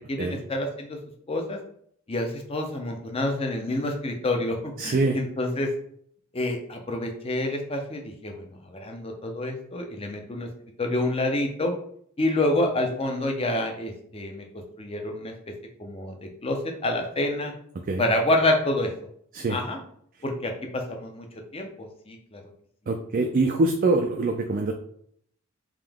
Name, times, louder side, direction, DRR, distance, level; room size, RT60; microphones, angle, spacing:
voice 1, 0.1-1.0 1.3-1.6 2.1-5.7 6.3-10.5 10.8-11.7 12.2-14.4 14.8-15.3 15.8-17.5 18.0-18.9 19.5-19.8 20.2-21.3 21.5-22.4, left 1 dB, 25° left, 3 dB, 0.6 m, -28 dB
voice 2, 4.8-5.2 17.9-18.0 19.3-19.6 22.9-24.7, right 2 dB, 40° right, 3 dB, 0.3 m, -24 dB
3.6 x 2.9 x 3.5 m, 0.65 s
head